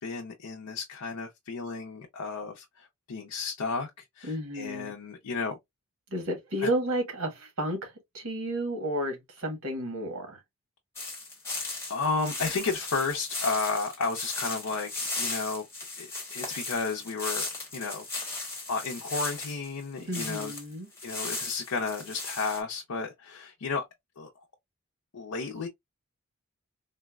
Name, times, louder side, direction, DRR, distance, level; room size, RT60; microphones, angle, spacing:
voice 1, 0.0-3.9 4.2-5.6 6.6-6.7 11.9-15.7 16.0-18.0 18.7-20.5 21.0-23.8 24.2-24.3 25.1-25.7, left 4 dB, 90° left, 0.6 m, -33 dB
voice 2, 4.2-4.9 6.1-10.4 20.1-20.9, right 1 dB, 70° right, 1.3 m, -32 dB
sound 1, 11.0-20.6 21.0-22.6, left 3 dB, 10° left, 1.0 m, -36 dB
3.8 x 2.1 x 2.3 m
head